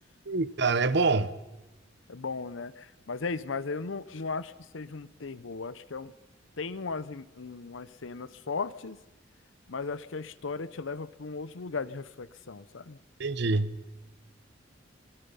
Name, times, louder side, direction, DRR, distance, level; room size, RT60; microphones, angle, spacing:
voice 1, 0.3-1.3 13.2-13.7, right 3 dB, 60° right, 0.8 m, -25 dB
voice 2, 2.1-6.1 6.6-9.0 9.7-13.0, left 4 dB, 85° left, 0.8 m, -36 dB
26.0 x 21.0 x 5.6 m
head